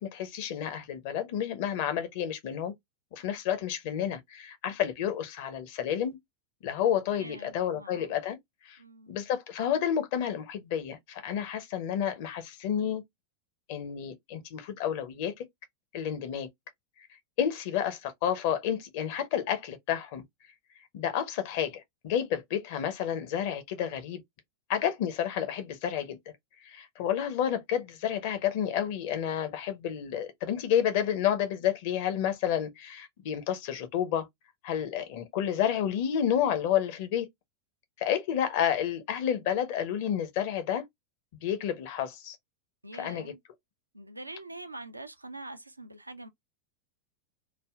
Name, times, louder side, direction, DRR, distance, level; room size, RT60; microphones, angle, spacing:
voice 1, 0.0-2.7 3.1-6.2 6.6-8.4 8.6-8.8 9.1-13.0 13.7-15.5 15.9-16.5 17.4-20.2 20.9-24.2 24.7-26.2 26.6-34.3 34.6-37.3 38.0-40.8 41.4-42.4 42.9-43.3, left 9 dB, 50° left, 0.6 m, -30 dB
voice 2, 7.2-8.2 8.8-9.2 42.8-43.4 43.9-46.3, right 2 dB, 85° right, 0.3 m, -44 dB
3.3 x 2.1 x 2.2 m
figure-of-eight pair, 90°, 0 cm